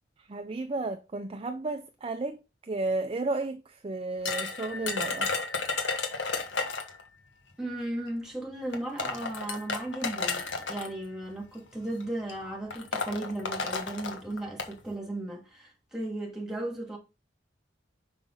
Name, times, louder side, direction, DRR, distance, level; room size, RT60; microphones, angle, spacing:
voice 1, 0.2-5.3, right 2 dB, 30° right, 0.5 m, -33 dB
sound 1, 4.3-7.0 8.1-8.2 8.7-10.9 11.8-12.0 12.3-12.4 12.7-14.7, left 4 dB, 85° left, 1.4 m, -32 dB
voice 2, 7.6-10.4 10.7-17.0, right 1 dB, 5° right, 2.2 m, -35 dB
5.9 x 5.5 x 3.9 m
head